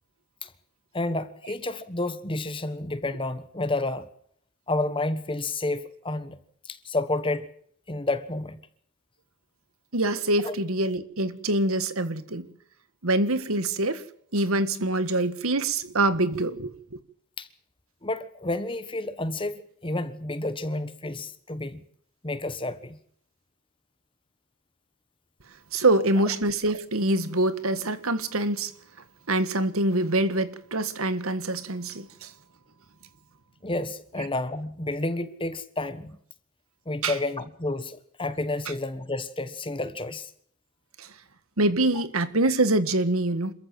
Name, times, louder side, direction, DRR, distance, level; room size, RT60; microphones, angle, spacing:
voice 1, 0.9-4.1 4.7-6.4 6.6-7.5 7.9-8.6 10.4-10.5 17.4-17.5 18.0-21.8 22.2-23.0 33.6-36.2 36.9-40.3, left 2 dB, 25° left, 1.3 m, -30 dB
voice 2, 9.9-12.5 13.0-14.0 14.3-16.7 25.7-28.7 29.3-32.3 37.0-37.1 41.0-41.1 41.6-43.5, right 2 dB, 75° right, 1.7 m, -25 dB
27.5 x 14.5 x 7.6 m
head